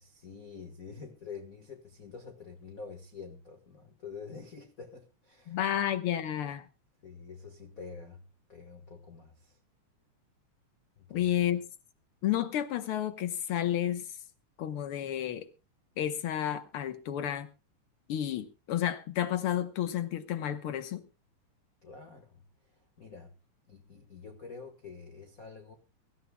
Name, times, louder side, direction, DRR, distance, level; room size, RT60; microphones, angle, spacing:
voice 1, 0.0-5.9 7.0-8.2 8.5-9.6 11.0-11.5 21.8-22.4 22.8-23.3 23.7-25.7, left 5 dB, 50° left, 1.0 m, -47 dB
voice 2, 5.5-6.7 11.1-11.6 12.2-14.1 14.6-15.5 16.0-17.5 18.1-21.0, left 11 dB, 65° left, 1.4 m, -31 dB
23.5 x 13.5 x 2.2 m
omnidirectional pair, 3.7 m